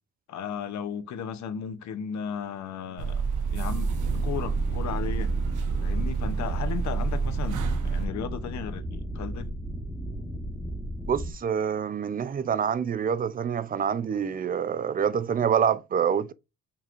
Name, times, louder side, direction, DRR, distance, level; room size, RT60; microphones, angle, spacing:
voice 1, 0.3-3.2 3.5-3.9 4.2-5.3 5.8-9.5, left 8 dB, 65° left, 0.8 m, -35 dB
sound 1, 3.0-8.1, right 5 dB, 85° right, 0.9 m, -28 dB
sound 2, 3.4-11.3, equal, 5° right, 1.1 m, -35 dB
voice 2, 11.1-16.3, right 7 dB, 30° right, 0.4 m, -26 dB
5.5 x 2.9 x 2.5 m
cardioid pair, 90°, 30 cm